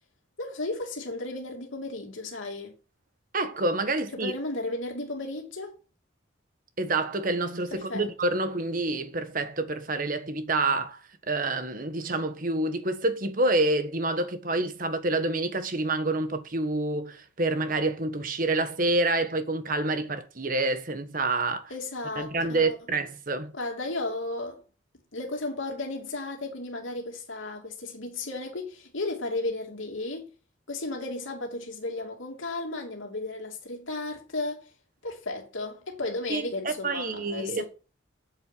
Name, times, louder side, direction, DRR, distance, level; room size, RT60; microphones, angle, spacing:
voice 1, 0.4-2.7 4.1-5.7 7.7-8.1 21.7-22.8 23.5-24.6 25.1-30.3 30.7-34.7 35.0-37.6, left 2 dB, 85° left, 2.8 m, -34 dB
voice 2, 3.3-4.3 6.8-11.0 11.3-21.7 22.2-23.5 36.3-37.6, right 2 dB, 45° right, 1.3 m, -27 dB
8.9 x 7.5 x 8.4 m
head